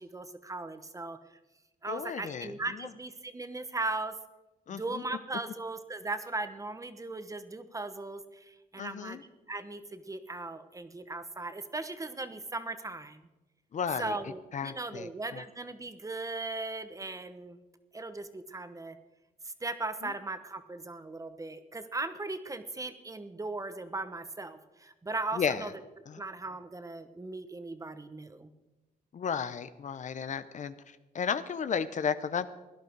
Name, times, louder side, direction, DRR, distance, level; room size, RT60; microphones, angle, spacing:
voice 1, 0.0-1.4 1.8-4.1 4.7-9.2 9.5-13.3 14.0-17.6 17.9-19.0 19.4-25.7 26.2-28.5, right 2 dB, 20° right, 10 dB, 1.1 m, -38 dB
voice 2, 1.9-2.9 4.7-5.0 8.8-9.2 13.7-14.2 14.5-15.4 20.0-20.1 25.3-25.7 26.1-26.2 29.1-32.5, left 7 dB, 55° left, 13 dB, 0.7 m, -34 dB
17.0 x 11.0 x 4.6 m, 1.1 s
cardioid pair, 85°, 15 cm